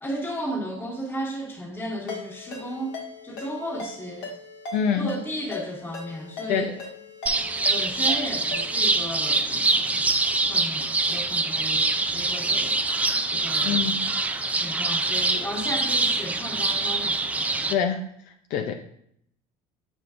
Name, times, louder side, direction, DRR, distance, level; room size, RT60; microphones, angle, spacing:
voice 1, 0.0-3.0 3.2-4.3 4.9-6.7 7.7-10.0 10.4-12.8 13.3-13.8 14.5-17.2, equal, 15° left, -2 dB, 1.7 m, -34 dB
Ringtone, 2.1-9.0, left 3 dB, 80° left, 1.7 m, -39 dB
voice 2, 4.7-5.1 6.5-6.8 13.6-14.1 17.7-18.0 18.5-18.7, left 7 dB, 60° left, 5 dB, 0.5 m, -25 dB
sound 1, 7.3-17.7, right 3 dB, 10° right, 0.3 m, -24 dB
7.7 x 5.1 x 2.5 m, 0.69 s
cardioid pair, 125°, 16 cm